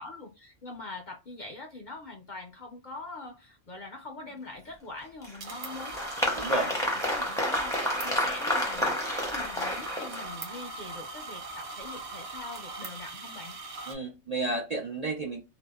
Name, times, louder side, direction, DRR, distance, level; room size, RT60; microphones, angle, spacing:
voice 1, 0.0-13.6, left 2 dB, 50° left, 0.6 m, -44 dB
Applause, 5.2-10.5, left 1 dB, 5° left, 0.5 m, -30 dB
sound 1, 5.3-13.9, right 3 dB, 65° right, 0.9 m, -40 dB
voice 2, 6.3-6.7 13.9-15.4, right 2 dB, 50° right, 0.5 m, -31 dB
2.7 x 2.1 x 2.2 m
omnidirectional pair, 1.3 m